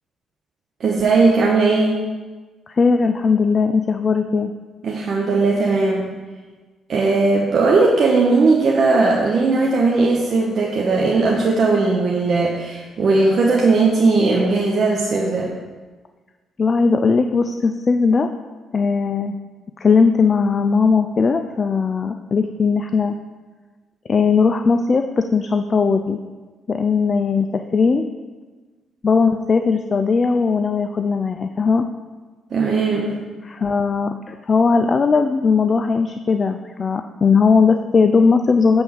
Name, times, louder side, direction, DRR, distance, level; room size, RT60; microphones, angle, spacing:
voice 1, 0.8-2.0 4.8-6.1 6.9-15.5 32.5-33.1, right 3 dB, 55° right, -2 dB, 0.8 m, -17 dB
voice 2, 2.7-4.5 16.6-18.3 18.7-19.4 19.8-23.1 24.1-26.2 26.7-28.1 29.0-31.9 33.4-38.8, left 5 dB, 40° left, 7 dB, 0.3 m, -18 dB
7.1 x 3.4 x 6.2 m, 1.3 s
cardioid pair, 90°, 0 cm